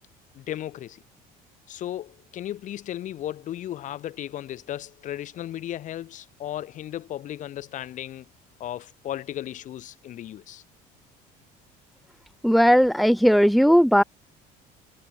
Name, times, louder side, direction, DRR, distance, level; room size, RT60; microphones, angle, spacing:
voice 1, 0.3-1.0 1.7-8.3 8.6-10.6, left 12 dB, 45° left, 5.7 m, -35 dB
voice 2, 12.4-14.0, equal, ahead, 1.7 m, -17 dB
cardioid pair, 150°, 17 cm